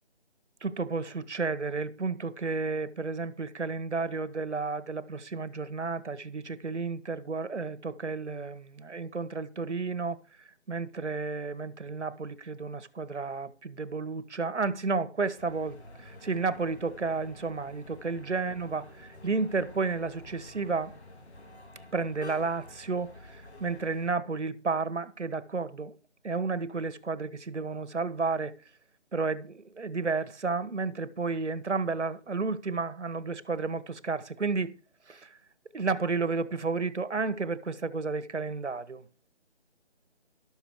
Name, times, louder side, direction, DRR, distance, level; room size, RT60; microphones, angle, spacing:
voice 1, 0.6-10.2 10.7-18.8 19.2-20.9 21.9-25.9 26.2-28.5 29.1-34.7 35.1-35.3 35.7-39.0, right 4 dB, 85° right, 1.3 m, -32 dB
sound 1, 15.4-24.1, left 1 dB, 70° left, 3.2 m, -50 dB
12.5 x 7.2 x 4.8 m
figure-of-eight pair, 180°, 34 cm